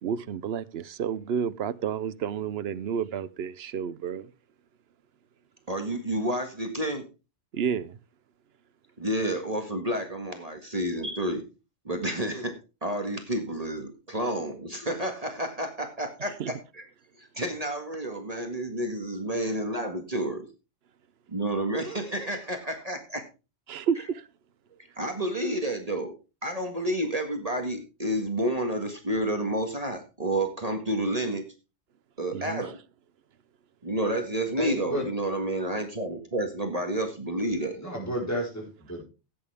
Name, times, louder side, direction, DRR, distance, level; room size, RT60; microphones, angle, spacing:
voice 1, 0.0-4.3 7.5-8.0 16.4-16.5 23.7-24.2 32.3-32.6, right 7 dB, 65° right, 0.9 m, -30 dB
voice 2, 5.7-7.0 9.0-11.4 11.8-16.8 17.2-20.5 21.3-23.2 25.0-26.1 26.4-31.4 32.2-32.8 33.8-37.8, right 1 dB, 35° right, 1.7 m, -30 dB
voice 3, 34.6-35.1 37.8-39.0, equal, 15° left, 4.4 m, -31 dB
16.0 x 8.7 x 3.4 m
omnidirectional pair, 1.2 m